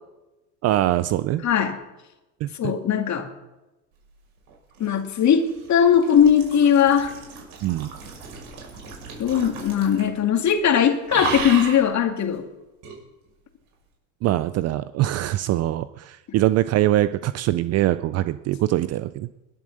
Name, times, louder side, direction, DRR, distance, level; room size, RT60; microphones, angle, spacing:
voice 1, 0.6-1.4 2.4-2.7 7.6-7.9 14.2-19.3, right 14 dB, 35° right, 14 dB, 0.4 m, -23 dB
voice 2, 1.4-1.8 2.6-3.3 4.8-7.1 9.2-12.5, left 8 dB, 35° left, 5 dB, 2.2 m, -19 dB
sound 1, 4.5-10.2 10.5-10.7 11.1-11.9 12.8-13.0, right 5 dB, 65° right, 5.9 m, -35 dB
21.0 x 7.5 x 6.6 m, 1.0 s
hypercardioid pair, 95°, 46 cm